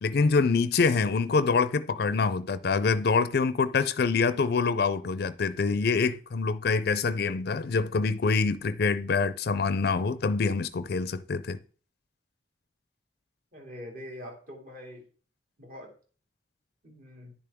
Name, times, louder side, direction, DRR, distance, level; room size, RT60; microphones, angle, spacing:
voice 1, 0.0-11.6, left 4 dB, 60° left, 0.4 m, -25 dB
voice 2, 13.5-15.0 15.6-15.9 16.8-17.4, left 1 dB, 50° right, 2.7 m, -43 dB
10.5 x 6.8 x 3.5 m
head